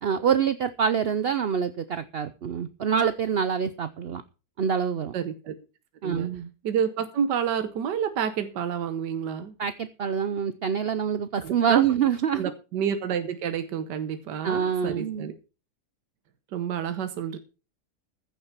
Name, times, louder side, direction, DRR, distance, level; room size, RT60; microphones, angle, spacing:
voice 1, 0.0-4.2 4.6-5.1 6.0-6.5 9.6-12.5 14.4-15.3, right 7 dB, 60° right, 0.6 m, -26 dB
voice 2, 5.1-5.5 6.0-6.3 6.6-9.5 11.4-11.8 12.3-15.3 16.5-17.4, right 8 dB, 80° right, 1.6 m, -29 dB
15.0 x 7.1 x 5.9 m
omnidirectional pair, 1.8 m